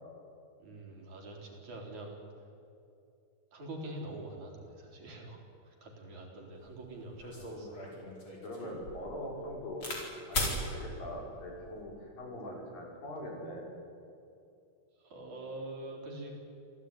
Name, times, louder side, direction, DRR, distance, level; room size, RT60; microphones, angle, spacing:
voice 1, 0.6-2.2 3.5-7.7 15.0-16.4, right 1 dB, 60° right, 0 dB, 5.3 m, -45 dB
sound 1, 6.7-6.8 7.2-10.0 10.3-10.6 11.4-11.8, left 1 dB, 35° left, 5.4 m, -37 dB
voice 2, 8.4-9.9 10.3-13.7, left 1 dB, 85° left, -1 dB, 7.1 m, -42 dB
26.0 x 16.5 x 9.9 m, 2.6 s
omnidirectional pair, 3.9 m